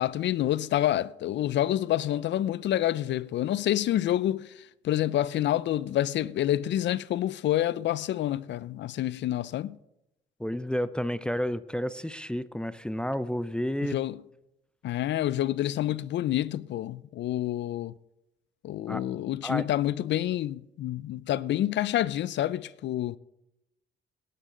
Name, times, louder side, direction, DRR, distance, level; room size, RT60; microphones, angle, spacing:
voice 1, 0.0-9.8 13.9-14.2 14.8-17.9 18.6-23.2, left 13 dB, 65° left, 0.4 m, -28 dB
voice 2, 10.4-14.0 18.9-19.0 19.4-19.7, equal, 5° left, 0.5 m, -31 dB
17.5 x 11.0 x 3.8 m
cardioid pair, 90°, 20 cm